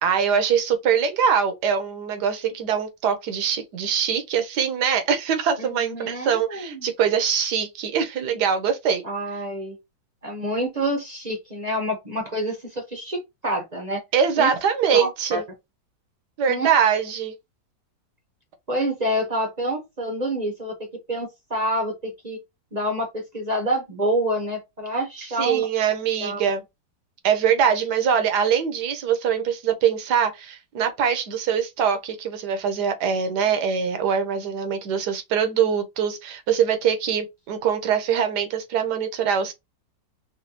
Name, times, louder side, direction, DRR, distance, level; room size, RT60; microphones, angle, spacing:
voice 1, 0.0-9.0 14.1-15.4 16.4-17.3 25.4-26.6 27.2-39.5, right 7 dB, 65° right, 1.3 m, -23 dB
voice 2, 5.6-6.9 9.0-9.8 10.2-14.0 14.4-14.5 14.9-15.4 16.5-16.7 18.7-22.4 22.7-25.6 26.2-26.4, right 1 dB, 35° right, 0.6 m, -27 dB
4.2 x 2.3 x 2.7 m
omnidirectional pair, 2.0 m